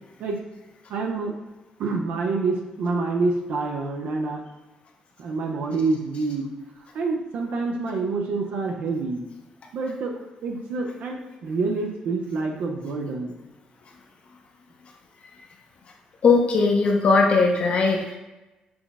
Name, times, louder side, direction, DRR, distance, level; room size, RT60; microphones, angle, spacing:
voice 1, 0.9-1.4 1.8-4.4 5.2-6.5 6.9-9.2 9.7-13.4, right 3 dB, 75° right, 1 dB, 0.6 m, -27 dB
voice 2, 16.2-18.2, left 4 dB, 50° left, 1 dB, 0.6 m, -19 dB
6.0 x 2.0 x 3.5 m, 1.1 s
cardioid pair, 125°, 3 cm